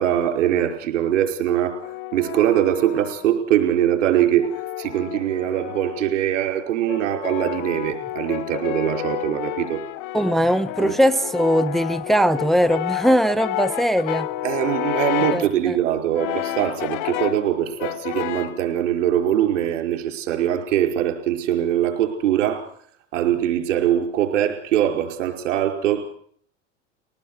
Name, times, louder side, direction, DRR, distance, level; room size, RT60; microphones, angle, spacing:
voice 1, 0.0-1.8 2.1-4.5 4.8-9.8 10.8-10.9 14.4-22.7 23.1-26.2, right 11 dB, 75° right, 4 dB, 5.2 m, -22 dB
Brass instrument, 1.5-3.4 4.2-6.2 6.9-15.5 16.1-17.5 17.8-18.6, left 14 dB, 60° left, 1.3 m, -30 dB
voice 2, 10.1-14.3 15.3-15.8, equal, ahead, 13 dB, 1.0 m, -20 dB
22.0 x 19.0 x 8.0 m, 0.63 s
hypercardioid pair, 90°, 37 cm